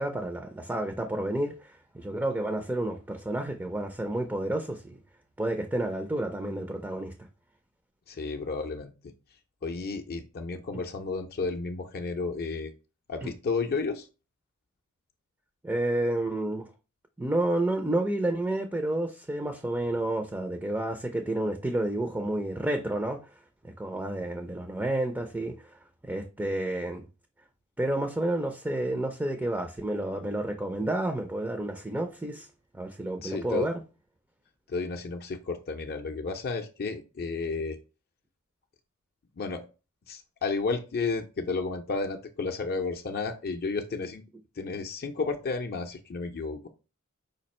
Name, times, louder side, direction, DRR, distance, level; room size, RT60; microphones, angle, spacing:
voice 1, 0.0-5.0 5.4-7.1 10.7-10.8 13.2-13.3 15.6-16.7 17.2-23.2 23.6-25.6 26.0-27.1 27.8-32.5 32.7-33.7, right 1 dB, 10° right, 0.4 m, -30 dB
voice 2, 8.1-8.9 9.6-12.7 13.1-14.1 33.2-33.7 34.7-37.8 39.4-39.6 40.1-44.2 44.6-46.6, left 4 dB, 45° left, 0.5 m, -32 dB
5.1 x 2.4 x 4.2 m
head